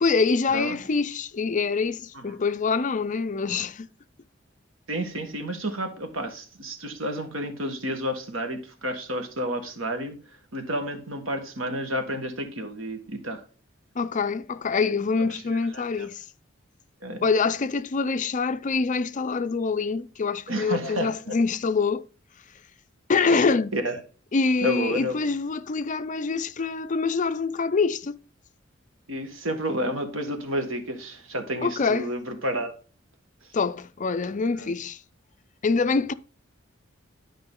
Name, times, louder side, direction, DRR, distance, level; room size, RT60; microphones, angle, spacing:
voice 1, 0.0-3.9 14.0-16.2 17.2-22.1 23.1-23.7 24.3-28.2 31.6-32.1 33.5-35.0 35.6-36.1, left 4 dB, 40° left, 0.5 m, -25 dB
voice 2, 4.9-10.2 10.5-13.4 15.3-16.1 17.0-17.3 20.5-21.4 23.2-23.4 23.7-24.0 24.6-25.2 29.1-32.8 34.6-34.7, equal, 90° right, 1.8 m, -31 dB
12.0 x 5.0 x 3.7 m
head